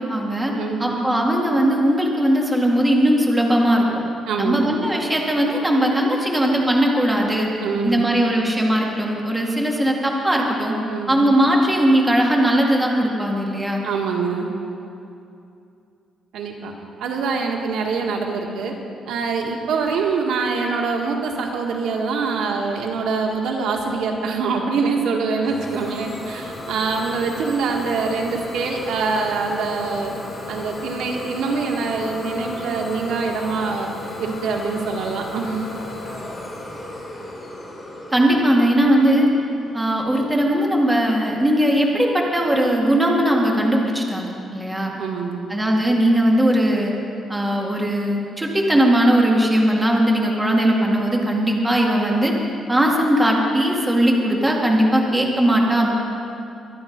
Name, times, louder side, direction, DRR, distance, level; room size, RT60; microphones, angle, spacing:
voice 1, 0.0-0.5 0.8-4.0 4.4-7.5 7.8-10.8 11.1-13.8 38.1-39.3 39.7-44.9 45.5-46.9 47.3-52.3 52.7-55.9, right 1 dB, 10° right, -1 dB, 2.0 m, -19 dB
voice 2, 0.6-1.1 4.3-4.8 7.6-8.3 10.9-11.3 13.8-14.5 16.3-16.7 17.0-18.7 19.1-30.1 30.5-33.9 34.2-35.7 45.0-45.5, right 4 dB, 85° right, 1 dB, 1.8 m, -24 dB
Idling / Domestic sounds home sounds, 25.4-41.0, left 2 dB, 20° left, 3.1 m, -35 dB
23.5 x 9.7 x 5.3 m, 2.7 s
cardioid pair, 145°, 0 cm